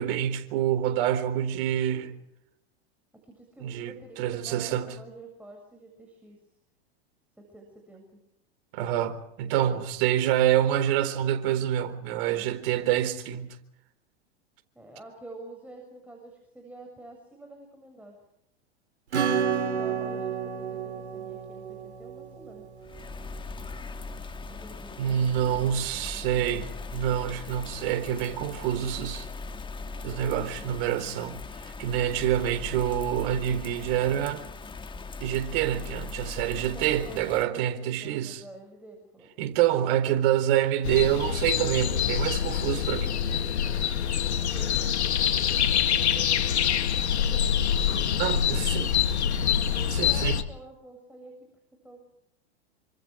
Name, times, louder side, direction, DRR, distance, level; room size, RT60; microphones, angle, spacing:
voice 1, 0.0-2.2 3.6-5.0 8.7-13.6 25.0-26.7 26.9-29.3 30.0-31.4 31.8-34.4 35.2-38.4 39.4-43.1 48.2-49.0 49.9-50.4, right 11 dB, 55° right, 4.0 m, -27 dB
voice 2, 3.2-6.4 7.4-8.2 14.8-18.2 19.5-22.7 24.5-25.3 25.5-25.7 36.7-39.3 44.5-46.3 47.3-47.7 48.1-48.5 48.8-49.3 49.6-51.4 51.8-52.0, right 2 dB, 5° right, 7.0 m, -48 dB
Acoustic guitar / Strum, 19.1-23.4, right 7 dB, 85° right, 4.4 m, -31 dB
Bird vocalization bird call bird song / Rain, 22.8-37.4, left 4 dB, 15° left, 1.7 m, -40 dB
sound 1, 40.8-50.4, left 8 dB, 80° left, 2.2 m, -25 dB
29.0 x 26.0 x 4.9 m
hypercardioid pair, 105°, 33 cm